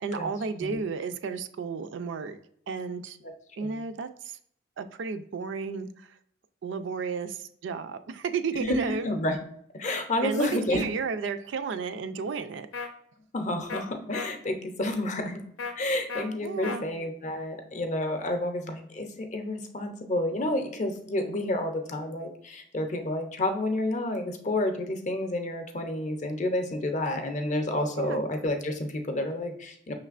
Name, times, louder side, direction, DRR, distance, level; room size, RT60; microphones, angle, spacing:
voice 1, 0.0-2.4 2.7-3.2 3.6-4.4 4.8-6.2 6.6-9.1 10.2-12.7 16.4-16.9 28.0-28.2, right 5 dB, 70° right, 9 dB, 0.3 m, -33 dB
voice 2, 8.6-9.4 9.7-10.8 13.3-15.4 15.8-29.9, left 1 dB, 40° left, 5 dB, 0.5 m, -30 dB
sound 1, 12.7-12.9 13.7-13.8 14.1-14.3 15.6-15.7 16.1-16.3 16.6-16.8, left 4 dB, 90° left, 0.6 m, -34 dB
5.8 x 3.2 x 2.4 m, 0.67 s
head